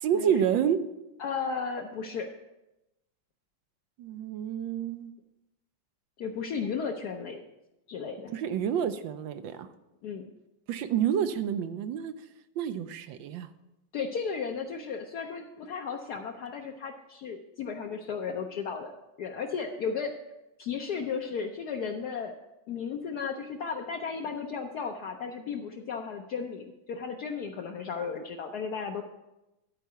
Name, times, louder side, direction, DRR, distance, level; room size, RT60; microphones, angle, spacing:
voice 1, 0.0-0.8 4.0-5.1 8.3-9.7 10.7-12.1 12.6-13.5, right 9 dB, 80° right, 10 dB, 1.4 m, -29 dB
voice 2, 1.2-2.3 6.2-7.4 7.9-8.3 10.0-10.2 13.9-18.9 19.2-20.1 20.6-22.3 22.7-29.0, left 6 dB, 65° left, 2 dB, 1.1 m, -34 dB
11.5 x 4.6 x 6.7 m, 0.94 s
omnidirectional pair, 2.0 m